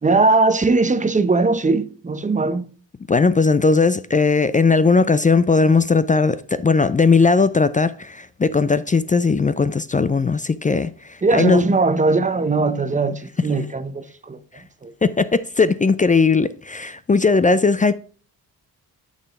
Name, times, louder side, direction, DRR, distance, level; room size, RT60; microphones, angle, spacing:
voice 1, 0.0-2.7 11.2-14.4 14.8-14.9, right 3 dB, 20° right, 0.8 m, -19 dB
voice 2, 3.1-11.6 15.0-17.9, left 4 dB, 20° left, 0.4 m, -18 dB
9.3 x 3.7 x 4.8 m
supercardioid pair, 55°, 41 cm